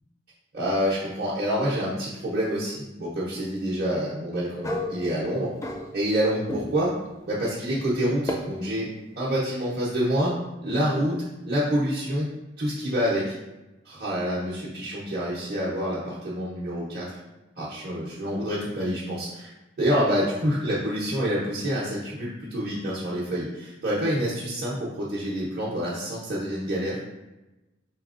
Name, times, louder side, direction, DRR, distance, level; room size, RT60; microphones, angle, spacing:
voice 1, 0.5-5.5 5.9-6.9 7.3-8.9 9.2-10.3 10.6-11.2 11.4-12.3 12.6-13.3 13.8-17.2 17.6-19.5 19.8-27.0, equal, 50° right, -9 dB, 0.8 m, -27 dB
sound 1, 4.6-6.2 6.5-7.0 8.3-8.4, left 1 dB, 15° left, 0.4 m, -32 dB
4.6 x 3.3 x 2.5 m, 1.0 s
head